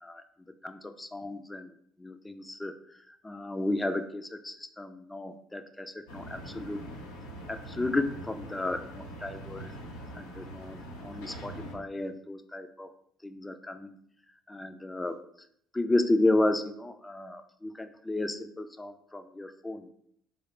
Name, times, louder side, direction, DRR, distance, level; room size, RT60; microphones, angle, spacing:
voice 1, 0.6-1.7 2.0-6.8 7.5-9.7 10.1-12.9 13.2-14.0 14.5-15.2 15.7-19.9, left 2 dB, 15° left, 9 dB, 0.5 m, -33 dB
sound 1, 6.1-11.8, right 1 dB, 80° left, 0.7 m, -43 dB
4.8 x 2.1 x 4.3 m, 0.68 s
hypercardioid pair, 55°, 0 cm